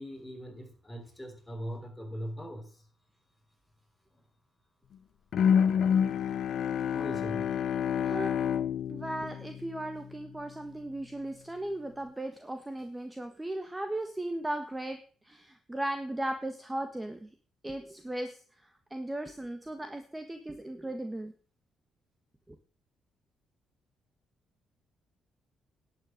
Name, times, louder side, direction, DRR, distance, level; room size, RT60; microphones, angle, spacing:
voice 1, 0.0-2.7 6.9-7.5, equal, 10° left, 2 dB, 4.8 m, -40 dB
Bowed string instrument, 5.3-10.4, left 8 dB, 65° left, 0.8 m, -28 dB
voice 2, 8.0-8.3 8.9-15.0 15.2-17.3 17.6-21.3, right 1 dB, 15° right, 7 dB, 1.4 m, -37 dB
11.0 x 9.1 x 6.5 m, 0.42 s
cardioid pair, 90°, 0 cm